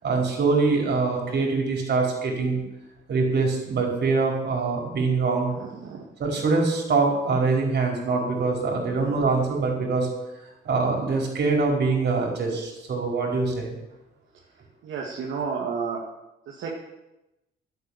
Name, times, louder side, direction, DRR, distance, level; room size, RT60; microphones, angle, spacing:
voice 1, 0.0-2.6 3.1-5.5 6.2-10.1 10.6-13.7, right 4 dB, 60° right, 0 dB, 5.0 m, -24 dB
voice 2, 14.8-16.0 16.5-16.7, right 5 dB, 75° right, -2 dB, 2.3 m, -31 dB
11.0 x 8.4 x 9.9 m, 0.95 s
cardioid pair, 90°, 20 cm